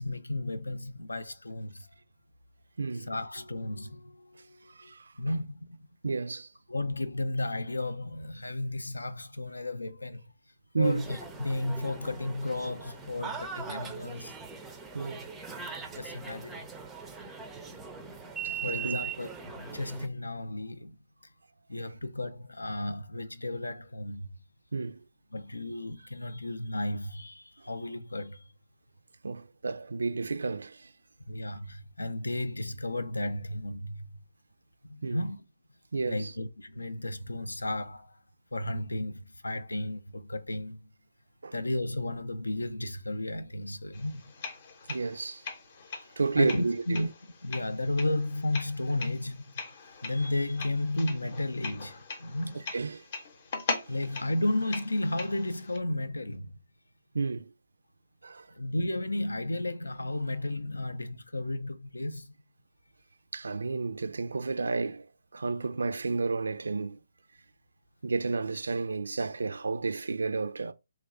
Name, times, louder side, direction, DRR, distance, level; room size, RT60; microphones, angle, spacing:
voice 1, 0.0-1.9 3.1-4.9 5.2-5.8 6.7-10.2 10.8-14.4 15.9-16.7 18.4-20.9 21.7-24.3 25.3-28.4 31.3-34.1 34.9-35.4 36.1-38.1 38.5-40.8 41.5-44.3 46.4-47.1 47.4-49.4 50.0-52.7 53.9-56.5 58.5-62.3, left 2 dB, 85° left, 0.5 m, -33 dB
voice 2, 2.8-3.1 4.7-5.1 6.0-6.5 10.7-11.0 14.9-15.3 18.4-19.0 24.7-25.0 27.6-27.7 29.2-30.9 35.0-35.2 35.9-36.4 41.4-41.5 44.9-45.4 46.2-47.1 52.5-53.0 57.1-57.5 58.2-58.5 63.3-67.0 68.0-70.7, right 4 dB, 70° right, 0.3 m, -31 dB
sound 1, 10.8-20.1, right 6 dB, 10° right, 0.4 m, -40 dB
sound 2, 43.9-55.8, left 4 dB, 40° left, 0.8 m, -41 dB
3.2 x 2.3 x 3.7 m
figure-of-eight pair, 145°, 0 cm